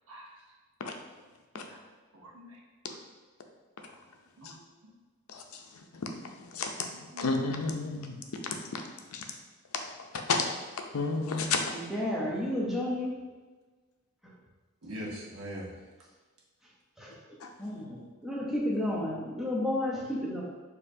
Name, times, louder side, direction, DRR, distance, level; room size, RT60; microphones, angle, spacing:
voice 1, 2.1-2.6 2.9-3.0 4.4-4.6 4.8-4.9 7.1-7.2 14.8-15.7, equal, 65° right, -4 dB, 0.8 m, -42 dB
voice 2, 7.2-8.1 10.3-10.4 10.9-11.6, left 4 dB, 80° left, 3 dB, 0.6 m, -29 dB
voice 3, 11.7-13.1 14.2-14.3 17.0-17.1 17.6-20.4, left 1 dB, ahead, -5 dB, 0.7 m, -32 dB
6.4 x 2.7 x 2.7 m, 1.3 s
head